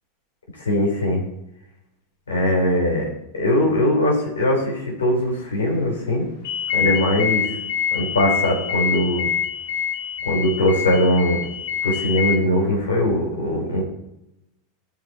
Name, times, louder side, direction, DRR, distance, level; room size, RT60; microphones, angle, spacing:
voice 1, 0.6-1.2 2.3-3.0 3.4-6.3 6.7-7.5 7.9-9.3 10.3-11.4 11.8-13.8, left 1 dB, 85° left, 0 dB, 4.3 m, -20 dB
sound 1, 6.4-12.3, left 9 dB, 70° left, 2.2 m, -25 dB
17.0 x 5.7 x 4.5 m, 0.84 s
hypercardioid pair, 95°, 0 cm